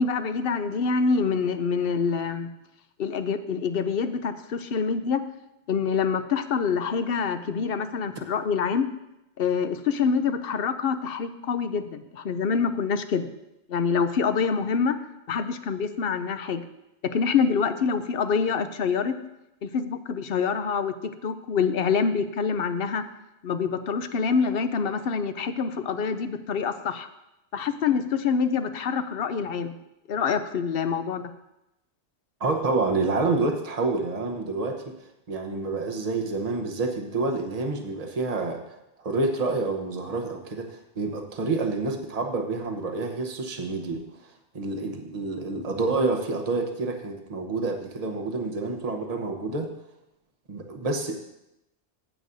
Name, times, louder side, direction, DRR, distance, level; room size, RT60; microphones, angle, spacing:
voice 1, 0.0-2.5 3.0-5.2 5.7-8.9 9.4-13.3 13.7-15.0 15.3-16.6 17.0-19.1 19.6-20.9 21.2-23.0 23.4-27.1 27.5-29.8 30.1-31.2, left 6 dB, 65° left, 10 dB, 0.8 m, -26 dB
voice 2, 32.4-35.0 35.3-49.7 50.5-51.1, right 3 dB, 40° right, 4 dB, 1.0 m, -28 dB
15.0 x 8.0 x 2.6 m, 0.90 s
omnidirectional pair, 1.1 m